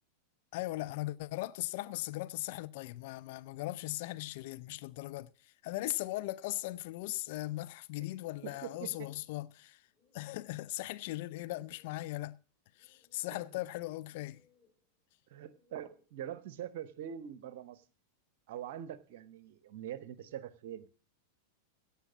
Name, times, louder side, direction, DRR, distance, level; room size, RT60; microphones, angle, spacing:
voice 1, 0.5-9.8 10.1-12.4 12.8-14.4, left 18 dB, 50° left, 0.5 m, -39 dB
voice 2, 8.4-9.1 13.3-13.4 15.3-17.8 18.5-20.9, right 10 dB, 50° right, 1.1 m, -44 dB
sound 1, 8.9-16.3, left 5 dB, 30° left, 3.5 m, -73 dB
17.0 x 5.8 x 7.2 m
figure-of-eight pair, 90°, 0 cm